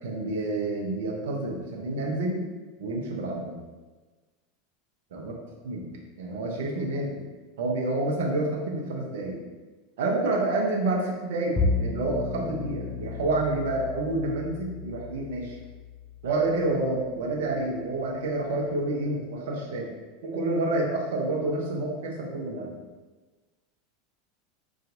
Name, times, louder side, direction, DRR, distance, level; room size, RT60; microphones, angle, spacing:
voice 1, 0.0-2.4 2.8-3.6 5.1-5.3 5.6-5.9 6.2-7.2 7.6-9.4 10.0-15.6 16.2-19.9 20.2-22.7, right 2 dB, 65° right, -1 dB, 0.7 m, -28 dB
Bowed string instrument, 11.6-18.0, left 3 dB, 20° left, 0.5 m, -33 dB
4.0 x 2.4 x 2.5 m, 1.3 s
figure-of-eight pair, 80°, 0 cm